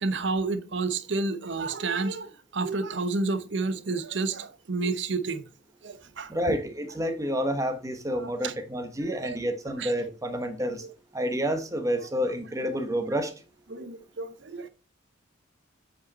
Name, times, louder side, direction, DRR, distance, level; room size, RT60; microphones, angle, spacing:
voice 1, 0.0-5.4 5.8-6.5 8.2-8.5 9.1-9.4 9.8-9.9 13.7-14.7, right 3 dB, 60° right, 0.8 m, -30 dB
voice 2, 6.3-10.8 11.1-13.3, equal, 15° right, 1.1 m, -29 dB
8.1 x 5.2 x 4.1 m
head